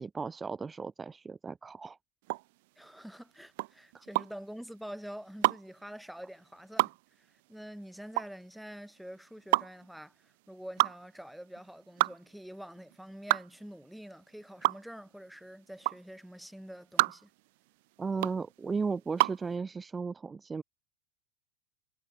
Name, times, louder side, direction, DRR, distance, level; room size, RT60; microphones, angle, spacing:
voice 1, 0.0-2.0 3.9-4.0 18.0-20.6, right 4 dB, 15° right, 0.6 m, -35 dB
sound 1, 2.2-19.5, right 23 dB, 55° right, 1.2 m, -31 dB
voice 2, 2.8-6.9 7.2-17.3, equal, ahead, 7.6 m, -46 dB
figure-of-eight pair, 85°, 0 cm